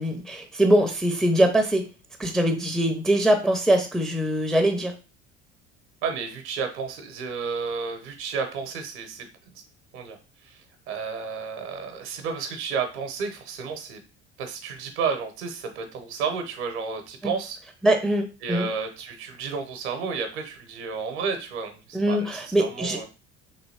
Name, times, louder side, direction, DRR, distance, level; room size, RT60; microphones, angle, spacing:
voice 1, 0.0-1.9 2.2-4.9 17.2-17.3 17.8-18.7 21.9-23.0, right 1 dB, ahead, 5 dB, 0.4 m, -22 dB
voice 2, 6.0-9.3 9.9-10.2 10.4-14.0 14.4-17.6 18.4-23.1, right 5 dB, 65° right, 6 dB, 0.8 m, -32 dB
3.2 x 2.8 x 2.7 m, 0.32 s
figure-of-eight pair, 60°, 36 cm